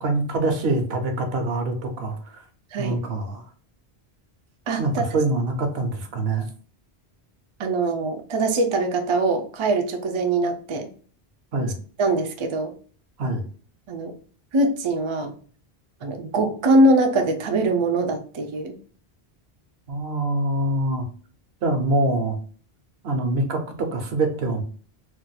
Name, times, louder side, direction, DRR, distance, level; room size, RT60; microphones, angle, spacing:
voice 1, 0.0-2.4 2.8-3.5 4.8-6.5 11.5-11.8 13.2-13.4 19.9-21.0 21.6-22.4 23.0-24.6, right 2 dB, 70° right, 5 dB, 0.9 m, -24 dB
voice 2, 4.7-5.1 7.6-10.9 12.0-12.7 13.9-14.1 14.5-15.3 16.0-18.7, right 2 dB, 50° right, 4 dB, 0.3 m, -22 dB
2.5 x 2.2 x 4.0 m, 0.43 s
omnidirectional pair, 1.1 m